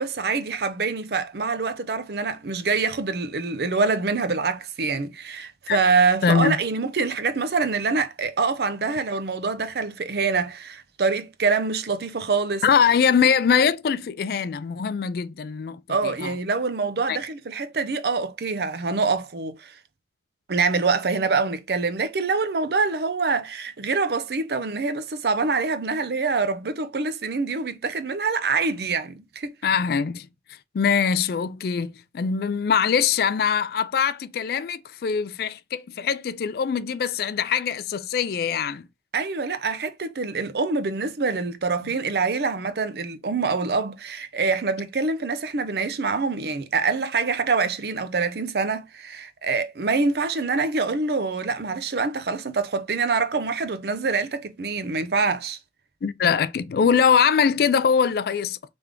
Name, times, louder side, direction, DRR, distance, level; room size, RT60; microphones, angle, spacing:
voice 1, 0.0-12.6 15.9-19.8 20.5-29.6 39.1-55.6, right 4 dB, 60° right, 0.6 m, -25 dB
voice 2, 6.2-6.6 12.6-16.3 17.1-17.2 29.6-30.3 30.7-38.9 56.0-58.6, left 6 dB, 60° left, 0.3 m, -22 dB
3.5 x 3.4 x 3.6 m
head